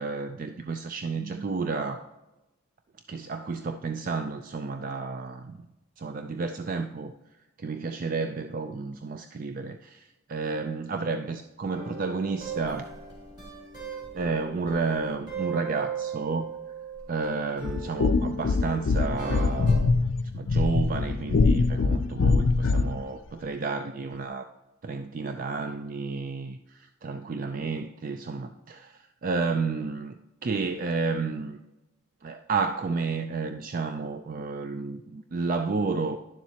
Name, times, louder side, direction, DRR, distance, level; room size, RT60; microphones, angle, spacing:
voice 1, 0.0-2.1 3.1-5.6 6.0-7.1 7.6-12.9 14.1-16.5 17.1-19.9 20.3-24.5 24.8-31.6 32.2-36.2, right 4 dB, 45° right, 7 dB, 0.4 m, -31 dB
sound 1, 11.7-17.2 17.6-19.9, right 5 dB, 20° right, 3.3 m, -38 dB
sound 2, 17.6-23.0, left 3 dB, 75° left, 0.4 m, -23 dB
10.5 x 7.2 x 2.8 m, 1.0 s
head